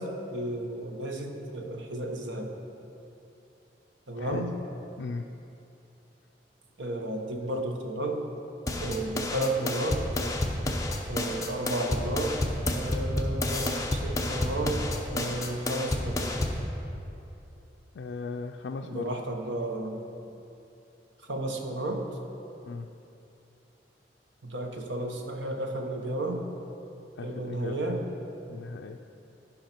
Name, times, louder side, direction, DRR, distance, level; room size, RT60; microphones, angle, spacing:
voice 1, 0.0-2.5 4.1-4.6 6.8-8.2 8.8-10.1 11.1-12.4 12.7-16.3 18.8-20.0 21.3-22.1 24.4-26.4 27.2-28.0, right 1 dB, 90° right, 3 dB, 1.0 m, -33 dB
sound 1, 8.7-16.7, left 1 dB, 20° left, 0.7 m, -30 dB
voice 2, 18.0-19.1 22.7-22.9 27.2-27.8 28.5-29.0, left 4 dB, 80° left, 2 dB, 0.4 m, -37 dB
13.5 x 5.6 x 4.4 m, 2.8 s
head